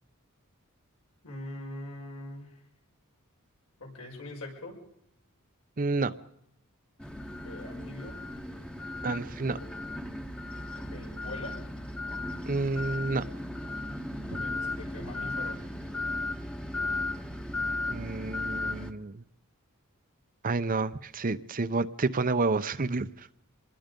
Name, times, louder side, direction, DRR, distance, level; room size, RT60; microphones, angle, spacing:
voice 1, 1.2-2.6 3.8-4.8 7.4-8.2 10.8-11.6 14.3-15.6, left 1 dB, 80° left, 6.2 m, -42 dB
voice 2, 5.8-6.1 9.0-9.6 12.5-13.2 14.3-14.4 17.9-19.2 20.4-23.3, right 3 dB, 40° right, 0.7 m, -29 dB
sound 1, 7.0-18.9, left 2 dB, 5° left, 1.1 m, -36 dB
25.0 x 20.5 x 5.3 m
head